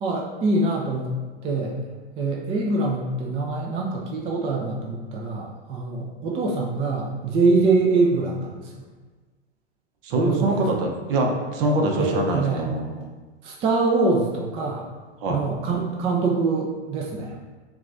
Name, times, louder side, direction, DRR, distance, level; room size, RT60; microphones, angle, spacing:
voice 1, 0.0-1.1 1.4-1.8 2.2-8.8 10.2-10.6 12.0-12.6 13.4-14.9 15.3-17.4, right 3 dB, 20° right, -2 dB, 0.3 m, -24 dB
voice 2, 10.0-13.1 15.2-15.4, right 2 dB, 50° right, 1 dB, 0.8 m, -24 dB
5.8 x 2.3 x 2.6 m, 1.3 s
hypercardioid pair, 105°, 35 cm